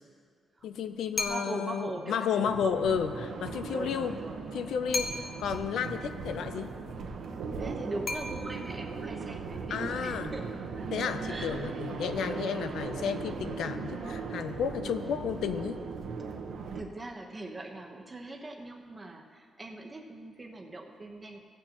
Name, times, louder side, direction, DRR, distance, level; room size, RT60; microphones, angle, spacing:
voice 1, 0.6-4.2 4.5-6.7 9.7-10.3 10.9-15.8, left 7 dB, 85° left, 10 dB, 0.5 m, -32 dB
sound 1, 1.2-1.8 4.9-5.6 8.1-8.9, left 2 dB, 35° left, 0.8 m, -35 dB
voice 2, 1.3-2.7 3.7-4.5 7.6-10.5 10.8-11.6 12.2-12.8 16.7-21.4, right 2 dB, 20° right, 2 dB, 1.0 m, -41 dB
sound 2, 2.4-16.8, right 4 dB, 75° right, 1.0 m, -38 dB
16.0 x 8.7 x 2.9 m, 2.1 s
cardioid pair, 130°, 0 cm